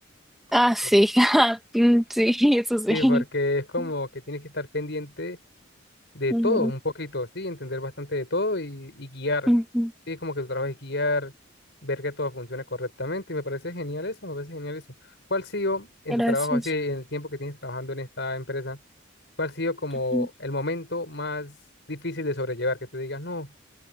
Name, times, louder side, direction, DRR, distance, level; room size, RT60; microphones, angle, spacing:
voice 1, 0.5-3.2 6.3-6.7 9.5-9.9 16.1-16.6 20.1-20.3, equal, ahead, 1.5 m, -21 dB
voice 2, 2.9-5.4 6.1-9.5 10.1-11.3 11.8-14.8 15.3-18.8 19.4-21.5 21.9-23.5, left 2 dB, 60° left, 6.4 m, -30 dB
open air
head